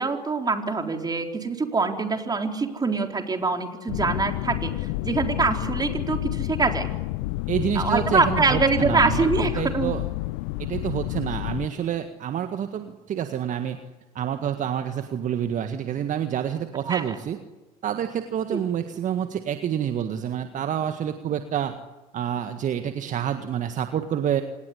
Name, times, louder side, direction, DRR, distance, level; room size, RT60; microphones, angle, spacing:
voice 1, 0.0-6.9 7.8-10.0 16.8-17.0 18.5-18.6, right 4 dB, 20° right, 4 dB, 4.0 m, -24 dB
sound 1, 3.9-11.7, left 20 dB, 65° left, 0.8 m, -29 dB
voice 2, 7.5-10.0 10.6-13.8 14.2-17.4 17.8-21.8 22.1-24.4, right 9 dB, 40° right, 7 dB, 1.8 m, -28 dB
27.0 x 19.0 x 9.9 m, 1.1 s
hypercardioid pair, 70°, 19 cm